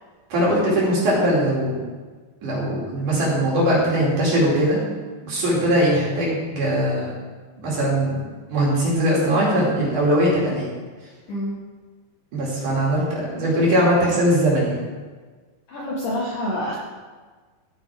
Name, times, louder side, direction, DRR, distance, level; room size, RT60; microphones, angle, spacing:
voice 1, 0.3-1.9 2.4-4.8 5.2-7.1 7.6-10.7 12.3-14.8, equal, 50° right, -5 dB, 3.6 m, -20 dB
voice 2, 15.7-16.8, equal, 65° left, -4 dB, 2.2 m, -27 dB
13.5 x 9.6 x 3.5 m, 1.4 s
omnidirectional pair, 5.2 m